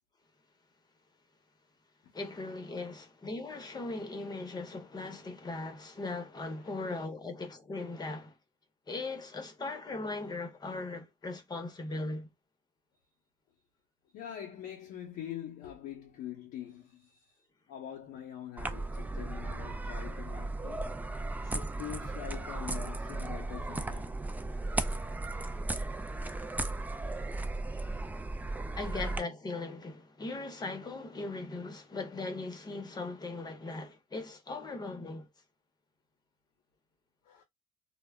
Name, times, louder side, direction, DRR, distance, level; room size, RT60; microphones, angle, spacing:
voice 1, 2.1-8.4 8.9-12.3 21.4-21.6 24.9-25.0 28.7-35.3, left 3 dB, 25° left, 0.8 m, -39 dB
voice 2, 14.1-17.3 17.7-20.8 21.5-24.1 27.1-27.3 28.6-28.8 37.3-37.4, left 10 dB, 75° left, 0.7 m, -44 dB
sound 1, 18.6-29.2, right 2 dB, 10° right, 0.4 m, -36 dB
2.2 x 2.0 x 3.4 m
supercardioid pair, 95°, 16 cm